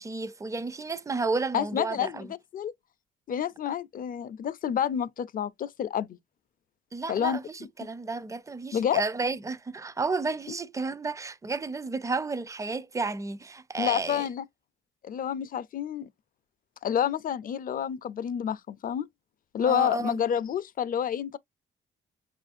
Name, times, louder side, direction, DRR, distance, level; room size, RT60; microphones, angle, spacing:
voice 1, 0.0-2.3 6.9-14.3 19.7-20.2, right 3 dB, 15° right, 0.4 m, -32 dB
voice 2, 1.5-2.3 2.5-2.7 3.3-6.2 7.1-7.4 8.7-9.0 13.8-14.4 15.0-16.1 16.8-19.1 19.5-21.4, left 9 dB, 45° left, 0.4 m, -29 dB
5.4 x 2.5 x 2.5 m
cardioid pair, 90°, 20 cm